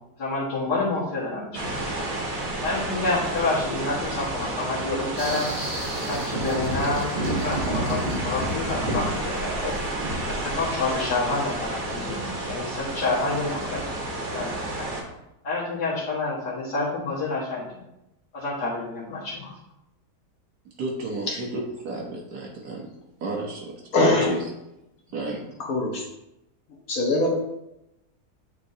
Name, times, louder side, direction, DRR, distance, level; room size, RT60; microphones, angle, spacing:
voice 1, 0.2-2.1 2.6-5.5 6.1-9.7 10.3-13.8 14.3-14.9 15.4-17.7 18.3-19.5, left 3 dB, 85° left, -10 dB, 2.1 m, -28 dB
sound 1, 1.5-15.0, right 1 dB, 60° right, 1.7 m, -31 dB
sound 2, 5.2-10.5, right 1 dB, 35° right, 1.3 m, -31 dB
voice 2, 20.8-22.9 23.2-23.7 24.3-24.4 25.1-25.4, right 2 dB, 75° right, -2 dB, 1.5 m, -32 dB
voice 3, 23.9-24.3 25.6-26.0 26.9-27.3, left 2 dB, 60° left, -1 dB, 1.6 m, -21 dB
8.3 x 4.5 x 2.7 m, 0.89 s
omnidirectional pair, 1.7 m